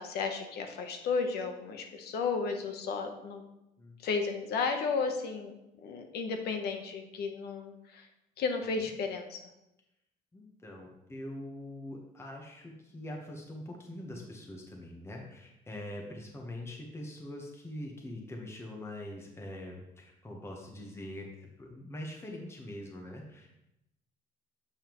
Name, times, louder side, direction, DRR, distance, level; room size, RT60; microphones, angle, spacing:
voice 1, 0.0-3.5 4.0-5.5 5.8-8.1 8.4-9.4, left 5 dB, 70° left, 5 dB, 0.9 m, -33 dB
voice 2, 10.3-23.6, left 1 dB, 15° left, 0 dB, 1.0 m, -43 dB
7.1 x 5.6 x 3.0 m, 0.88 s
cardioid pair, 110°, 17 cm